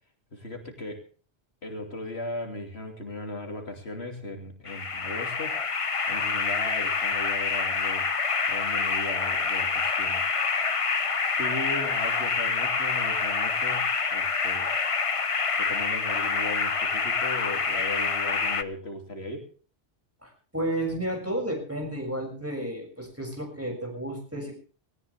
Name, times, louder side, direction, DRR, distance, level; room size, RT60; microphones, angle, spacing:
voice 1, 0.3-1.1 1.6-5.6 6.1-8.1 8.5-10.3 11.4-14.7 15.6-19.5, left 2 dB, 75° left, 3 dB, 3.2 m, -37 dB
sound 1, 4.7-18.6, left 4 dB, 35° left, 0.9 m, -27 dB
voice 2, 20.2-24.5, right 1 dB, 15° right, 1 dB, 6.8 m, -32 dB
18.5 x 18.5 x 3.5 m, 0.39 s
omnidirectional pair, 1.1 m